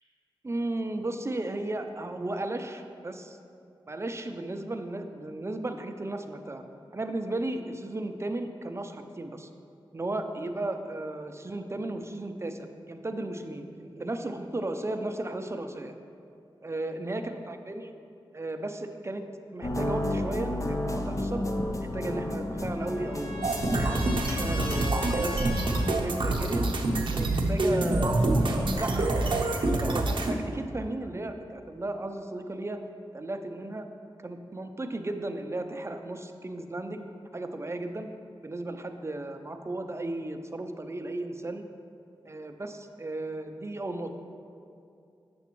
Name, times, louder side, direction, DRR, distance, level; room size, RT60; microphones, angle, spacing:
voice 1, 0.4-3.4 3.9-6.6 6.9-9.5 9.9-15.9 16.6-17.9 18.3-21.4 21.9-23.4 23.8-25.6 25.9-26.7 27.1-32.8 33.1-33.9 34.2-37.1 37.3-38.1 38.4-41.6 42.2-44.2, right 2 dB, 30° right, 6 dB, 0.5 m, -35 dB
sound 1, 19.6-24.9, left 1 dB, 35° left, 0.6 m, -31 dB
Trumpet, 22.1-26.0, left 1 dB, 75° left, 1.1 m, -40 dB
sound 2, 23.4-30.3, right 2 dB, 65° right, 0.7 m, -26 dB
7.1 x 6.8 x 3.0 m, 2.5 s
cardioid pair, 45°, 9 cm